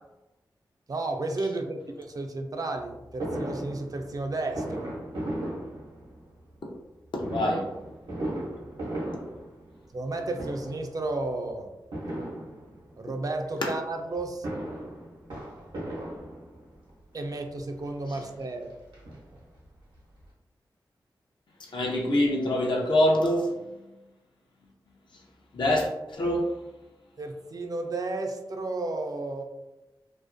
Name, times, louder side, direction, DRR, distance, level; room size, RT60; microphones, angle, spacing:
voice 1, 0.9-4.9 9.9-11.7 13.0-14.5 17.1-18.7 27.2-29.4, right 2 dB, 45° right, 4 dB, 0.4 m, -32 dB
Fireworks, 3.2-6.4 7.2-10.1 10.3-11.0 11.9-13.0 14.2-16.8 17.6-17.7 18.0-18.1 18.4-19.7 20.0-20.1 20.2-20.3, right 1 dB, 90° right, 0.7 m, -36 dB
voice 2, 7.1-7.7 9.1-9.2 13.6-13.7 18.1-18.2 21.6-23.7 25.5-26.5, left 1 dB, 70° left, -1 dB, 0.6 m, -25 dB
2.4 x 2.1 x 2.5 m, 1.0 s
cardioid pair, 40°, 8 cm